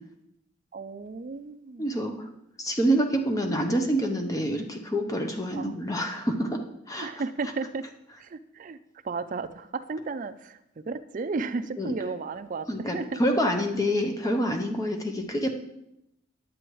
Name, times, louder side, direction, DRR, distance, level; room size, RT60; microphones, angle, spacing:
voice 1, 0.7-1.9 5.5-5.7 7.0-7.8 8.2-8.8 9.0-13.2 15.2-15.4, right 4 dB, 40° right, 11 dB, 0.4 m, -34 dB
voice 2, 1.8-2.3 2.6-6.6 6.9-7.1 11.8-11.9 12.7-15.5, equal, 15° left, 4 dB, 0.6 m, -27 dB
10.5 x 7.6 x 3.1 m, 0.83 s
head